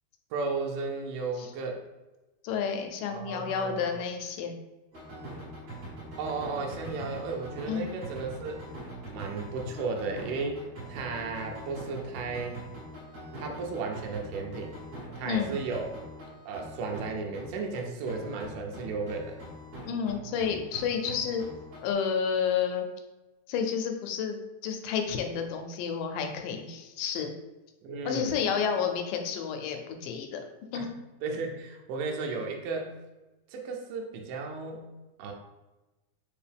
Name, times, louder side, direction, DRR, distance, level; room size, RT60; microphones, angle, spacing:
voice 1, 0.3-1.8 3.1-4.0 6.2-8.6 9.1-12.6 13.4-14.7 15.2-15.9 16.5-19.4 27.8-28.4 30.7-30.9 31.2-32.9 33.5-34.9 35.2-35.3, right 4 dB, 80° right, 1 dB, 2.2 m, -34 dB
voice 2, 2.4-4.5 7.7-7.9 15.2-15.5 19.9-21.4 21.8-22.9 23.5-27.3 28.1-30.4 30.7-30.9, left 7 dB, 80° left, 5 dB, 2.1 m, -30 dB
sound 1, 4.9-17.8 18.1-21.9, right 1 dB, 55° right, 2.3 m, -43 dB
5.4 x 2.7 x 3.4 m, 1.1 s
omnidirectional pair, 3.9 m